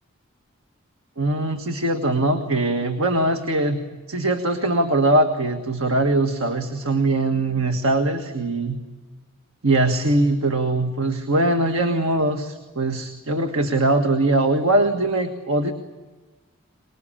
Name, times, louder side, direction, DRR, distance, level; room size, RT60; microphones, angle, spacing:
voice 1, 1.2-3.8 4.1-8.8 9.6-15.7, right 2 dB, 85° right, 6 dB, 1.6 m, -21 dB
24.5 x 21.0 x 8.8 m, 1.3 s
head